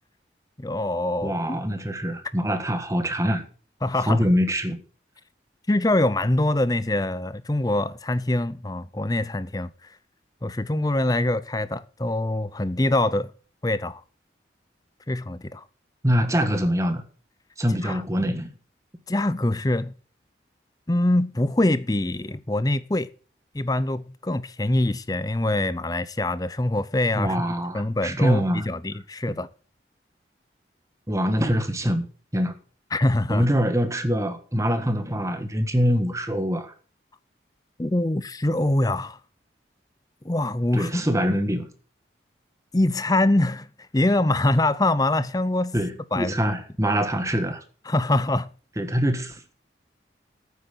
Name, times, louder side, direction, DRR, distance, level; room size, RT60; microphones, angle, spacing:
voice 1, 0.6-1.6 3.8-4.3 5.7-9.7 10.4-13.3 13.6-14.0 15.1-15.6 17.8-18.0 19.1-19.9 20.9-23.1 23.5-27.4 27.7-29.5 32.9-33.5 37.8-39.2 40.2-41.2 42.7-43.7 43.9-45.8 46.1-46.5 47.9-48.5, left 1 dB, 20° left, 0.6 m, -24 dB
voice 2, 1.2-3.4 4.1-4.8 16.0-17.0 17.6-18.5 27.1-28.6 31.1-32.1 32.3-32.5 33.3-36.7 40.7-41.7 45.7-47.6 48.8-49.6, equal, 15° right, 1.5 m, -24 dB
9.2 x 8.3 x 8.3 m
head